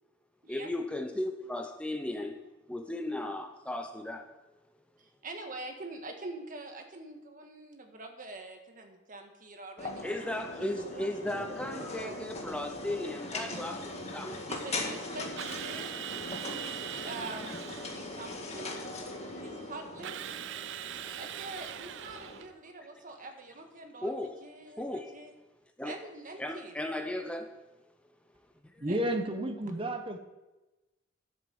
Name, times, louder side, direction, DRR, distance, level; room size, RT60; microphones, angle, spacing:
voice 1, 0.5-2.4 2.7-4.3 10.0-13.8 14.1-14.4 24.0-24.4 24.8-25.1 25.8-26.0 26.4-27.5, left 1 dB, 5° left, 5 dB, 0.6 m, -36 dB
voice 2, 5.0-10.1 10.6-12.2 13.4-13.6 14.5-16.0 16.4-18.8 19.3-20.2 20.9-25.3 25.8-26.7 28.9-29.0, right 2 dB, 45° right, 4 dB, 1.7 m, -45 dB
sound 1, 9.8-22.4, left 2 dB, 35° left, 1.8 m, -40 dB
Drill, 15.4-18.1 20.0-22.5, right 12 dB, 70° right, 0.4 m, -41 dB
voice 3, 28.8-30.2, right 1 dB, 30° right, 5 dB, 1.1 m, -31 dB
11.5 x 8.1 x 7.1 m, 1.1 s
head